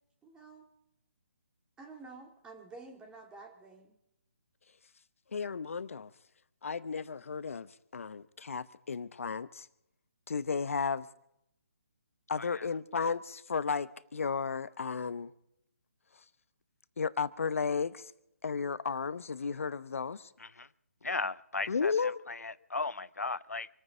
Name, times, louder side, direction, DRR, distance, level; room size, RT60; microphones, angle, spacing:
voice 1, 0.2-0.6 1.8-4.0, right 3 dB, 10° right, 2.5 m, -50 dB
voice 2, 5.3-6.1 6.6-9.7 10.3-11.1 12.3-15.3 17.0-18.1 18.4-20.3 21.7-22.2, left 5 dB, 65° left, 0.9 m, -34 dB
voice 3, 21.0-23.7, left 3 dB, 90° left, 0.7 m, -37 dB
27.5 x 9.5 x 5.1 m
figure-of-eight pair, 145°, 8 cm